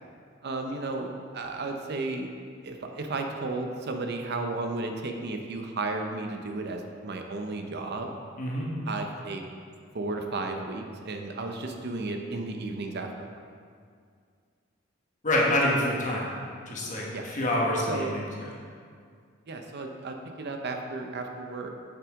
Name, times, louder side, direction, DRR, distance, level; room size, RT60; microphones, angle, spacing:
voice 1, 0.4-2.3 2.6-8.1 8.9-9.4 9.9-13.3 17.1-17.3 17.9-18.2 19.5-21.7, right 3 dB, 55° right, 4 dB, 0.7 m, -33 dB
voice 2, 8.4-8.7 15.2-16.3 16.7-18.3, left 1 dB, 40° left, -3 dB, 1.4 m, -26 dB
8.5 x 5.8 x 3.7 m, 2.2 s
head